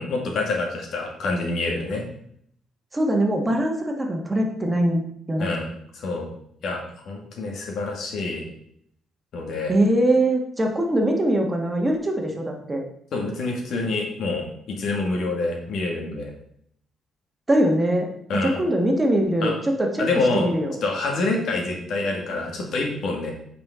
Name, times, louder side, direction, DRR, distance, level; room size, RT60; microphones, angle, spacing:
voice 1, 0.0-2.0 5.4-6.3 6.6-8.4 9.3-9.7 13.1-16.3 18.3-18.6 19.4-19.5 20.0-20.5 20.8-23.3, left 3 dB, 70° left, 1 dB, 1.9 m, -27 dB
voice 2, 2.9-5.5 9.7-12.8 17.5-18.1 18.4-20.0 20.3-20.8, right 1 dB, 20° right, 2 dB, 1.5 m, -22 dB
8.8 x 5.2 x 3.7 m, 0.70 s
cardioid pair, 95°, 0 cm